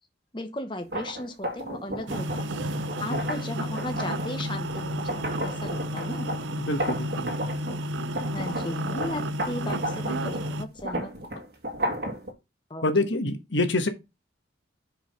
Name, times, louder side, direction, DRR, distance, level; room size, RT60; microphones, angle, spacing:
voice 1, 0.3-2.5 3.0-6.3 8.2-11.1 12.7-13.0, left 1 dB, 25° left, 0.8 m, -36 dB
sound 1, 0.8-7.8 8.1-12.3, right 1 dB, 55° right, 1.9 m, -33 dB
sound 2, 2.1-10.6, equal, 80° right, 0.7 m, -32 dB
voice 2, 6.6-7.3 12.8-13.9, left 2 dB, 75° left, 1.3 m, -26 dB
5.6 x 5.0 x 5.5 m
head